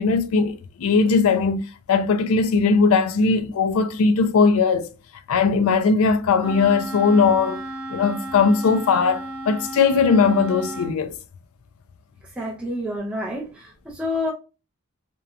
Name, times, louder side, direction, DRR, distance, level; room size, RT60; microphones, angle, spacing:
voice 1, 0.0-1.6 1.9-4.9 5.3-7.6 7.9-11.2, left 5 dB, 70° left, 0.4 m, -19 dB
Wind instrument woodwind instrument, 6.4-11.0, right 1 dB, 75° right, 0.7 m, -34 dB
voice 2, 12.4-14.3, left 1 dB, 5° right, 0.3 m, -28 dB
2.9 x 2.1 x 2.3 m
head